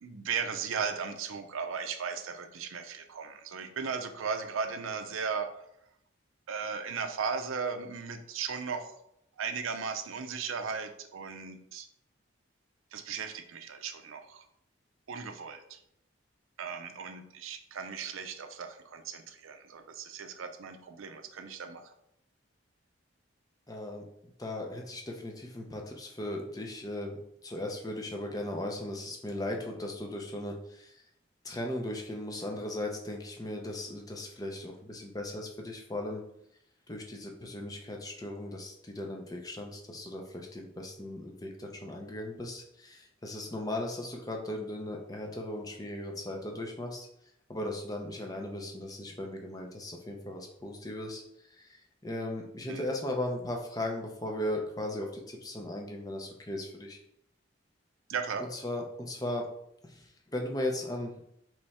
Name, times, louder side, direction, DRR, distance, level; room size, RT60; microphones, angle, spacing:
voice 1, 0.0-5.6 6.5-8.9 9.4-11.9 12.9-14.4 15.1-15.8 16.6-21.9 52.7-52.8 58.1-58.5, right 5 dB, 90° right, 7 dB, 0.5 m, -36 dB
voice 2, 23.7-24.0 24.4-31.0 31.4-36.2 36.9-47.1 47.5-57.0 58.4-59.5 59.8-61.1, left 1 dB, 20° left, 1 dB, 0.6 m, -37 dB
3.4 x 3.2 x 4.1 m, 0.77 s
head